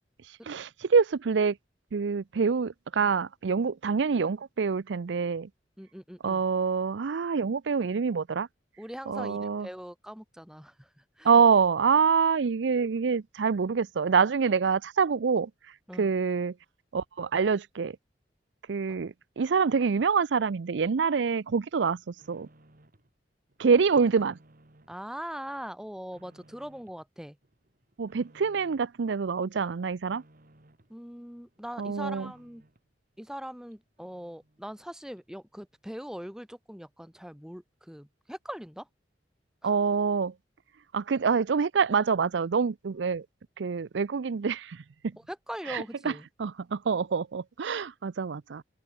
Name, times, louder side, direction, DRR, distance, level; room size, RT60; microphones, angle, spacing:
voice 1, 0.3-1.6 1.9-5.5 6.2-8.5 9.1-9.7 11.2-15.5 16.0-16.5 16.9-18.0 18.7-22.5 23.6-24.4 28.0-30.2 31.8-32.3 39.6-40.3 40.9-43.3 43.6-44.8 45.7-46.1 46.4-48.6, right 5 dB, 70° right, 0.5 m, -26 dB
voice 2, 5.8-6.5 8.8-10.9 11.2-11.3 15.9-16.1 24.9-27.4 30.9-32.6 33.2-38.9 39.6-39.7 45.2-46.3, equal, 5° right, 1.6 m, -41 dB
sound 1, 21.5-23.1 23.5-25.1 25.4-27.1 27.4-29.0 29.4-31.0 31.3-32.9 33.3-33.4 33.7-33.8 34.0-34.8 35.2-35.3, right 1 dB, 50° right, 2.6 m, -61 dB
head